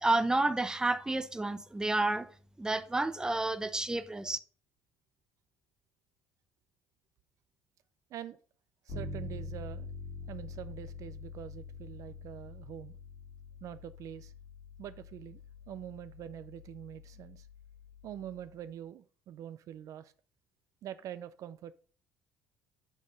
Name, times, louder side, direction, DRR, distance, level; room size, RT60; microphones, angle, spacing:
voice 1, 0.0-2.3 2.6-4.4, right 2 dB, 10° right, 0.6 m, -30 dB
voice 2, 8.8-9.9 10.3-13.0 13.6-14.3 14.8-17.5 18.0-20.1 20.8-21.7, right 10 dB, 60° right, 0.4 m, -45 dB
Bass guitar, 8.9-18.6, left 3 dB, 75° left, 2.5 m, -46 dB
6.2 x 3.7 x 5.2 m
supercardioid pair, 90°, 6 cm